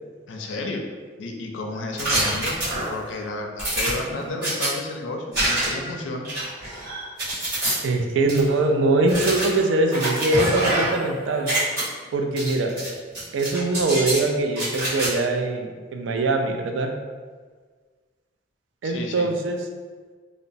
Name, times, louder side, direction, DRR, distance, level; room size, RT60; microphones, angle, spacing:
voice 1, 0.3-0.9 1.2-2.6 2.9-6.3 18.8-19.3, left 2 dB, 85° left, 2 dB, 0.4 m, -32 dB
sound 1, 2.0-3.1 3.6-4.7 5.3-5.9 6.2-7.7 8.3-8.4 9.1-11.1 11.3-11.8 12.4-12.9 13.1-14.2 14.5-15.1, right 1 dB, 55° right, 1.4 m, -26 dB
voice 2, 7.8-11.5 12.1-12.7 13.3-16.9 18.8-19.6, right 2 dB, 80° right, 4 dB, 0.3 m, -22 dB
2.9 x 2.0 x 2.6 m, 1.5 s
head